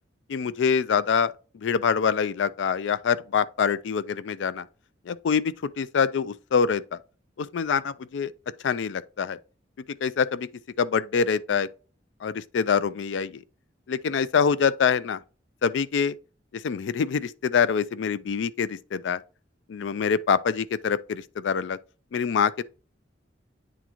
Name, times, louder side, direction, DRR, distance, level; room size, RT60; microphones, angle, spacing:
voice 1, 0.3-4.7 5.1-7.0 7.4-8.3 8.6-9.4 10.0-10.5 10.8-11.7 12.2-13.4 13.9-15.2 15.6-16.2 16.5-19.2 19.7-21.8 22.1-22.6, left 6 dB, 80° left, 0.4 m, -25 dB
9.2 x 3.7 x 2.9 m
head